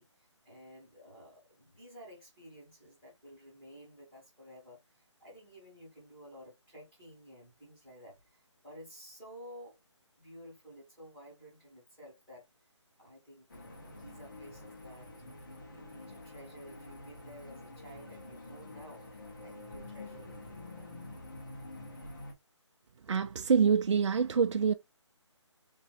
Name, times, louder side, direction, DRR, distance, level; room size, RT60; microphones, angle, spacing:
voice 1, 0.0-9.8 10.2-12.5 13.0-15.1 15.7-19.1 19.4-20.9, equal, 5° left, 0.8 m, -53 dB
sound 1, 13.5-22.3, left 2 dB, 40° left, 1.3 m, -48 dB
voice 2, 23.1-24.7, right 6 dB, 70° right, 0.4 m, -26 dB
3.6 x 3.0 x 2.7 m
hypercardioid pair, 180°, 16 cm